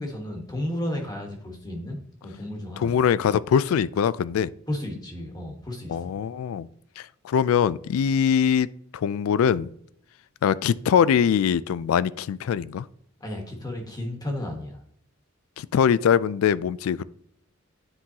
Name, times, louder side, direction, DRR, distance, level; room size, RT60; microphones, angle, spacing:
voice 1, 0.0-2.0 2.2-3.0 4.7-6.2 13.2-14.8, left 1 dB, 20° left, 1.3 m, -33 dB
voice 2, 2.8-4.5 5.9-6.7 7.0-8.7 8.9-9.7 10.4-12.9 15.6-17.0, left 8 dB, 80° left, 0.3 m, -22 dB
9.7 x 3.8 x 2.8 m
head